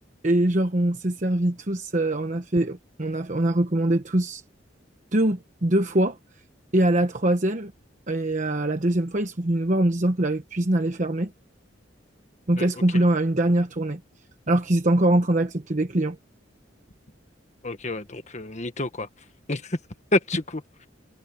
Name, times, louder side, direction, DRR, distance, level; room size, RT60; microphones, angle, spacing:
voice 1, 0.2-4.4 5.1-6.2 6.7-7.7 8.1-11.3 12.5-14.0 14.5-16.2, right 1 dB, 40° right, 1.1 m, -23 dB
voice 2, 17.6-19.1 19.5-19.8 20.1-20.6, left 2 dB, 40° left, 1.6 m, -28 dB
head